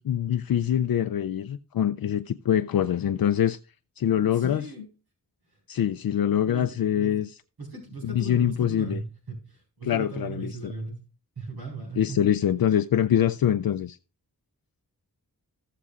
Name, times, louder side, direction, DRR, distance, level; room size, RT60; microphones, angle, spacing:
voice 1, 0.0-3.6 4.0-4.7 5.7-7.3 8.0-9.0 9.9-10.7 12.0-14.0, left 10 dB, 70° left, 0.5 m, -24 dB
voice 2, 4.1-4.9 6.5-7.2 7.6-11.0 11.4-12.3, right 3 dB, 90° right, 4.6 m, -38 dB
16.0 x 6.7 x 2.4 m
wide cardioid pair, 65°, 37 cm